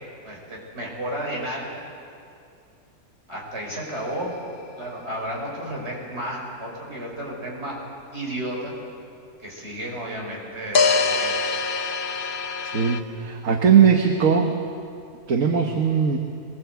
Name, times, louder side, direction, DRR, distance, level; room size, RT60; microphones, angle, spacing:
voice 1, 0.2-1.7 3.3-4.4 4.8-7.8 8.1-8.7 9.4-11.4, right 1 dB, 40° right, -2 dB, 5.8 m, -32 dB
sound 1, 3.8-3.9 10.7-13.0, left 4 dB, 40° left, 0.9 m, -23 dB
voice 2, 12.6-14.5 15.3-16.2, right 7 dB, 60° right, 3 dB, 1.6 m, -19 dB
23.0 x 19.5 x 8.2 m, 2.5 s
omnidirectional pair, 1.6 m